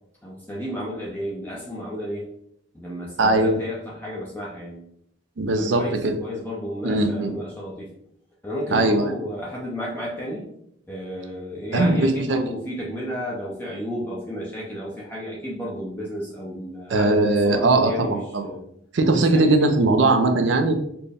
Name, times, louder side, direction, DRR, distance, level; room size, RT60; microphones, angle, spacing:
voice 1, 0.2-2.2 2.7-4.8 5.5-7.9 8.4-10.5 10.9-18.6 19.1-19.7, equal, 10° left, -5 dB, 0.5 m, -32 dB
voice 2, 3.2-3.6 5.4-6.2 6.8-7.3 8.7-9.1 11.7-12.4 16.9-18.5 18.9-20.8, right 2 dB, 70° right, 6 dB, 0.5 m, -20 dB
4.3 x 2.1 x 3.4 m, 0.75 s
head